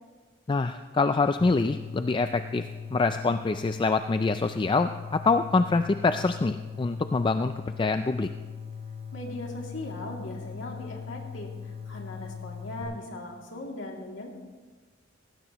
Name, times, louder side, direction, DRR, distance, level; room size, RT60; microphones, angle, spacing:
voice 1, 0.5-2.6 2.9-7.5 7.8-8.3, left 3 dB, 25° left, 9 dB, 0.3 m, -25 dB
sound 1, 1.4-12.8, left 6 dB, 30° right, 3.5 m, -40 dB
voice 2, 9.1-14.3, left 1 dB, 70° left, 0 dB, 2.6 m, -39 dB
18.0 x 16.5 x 3.0 m, 1.4 s
head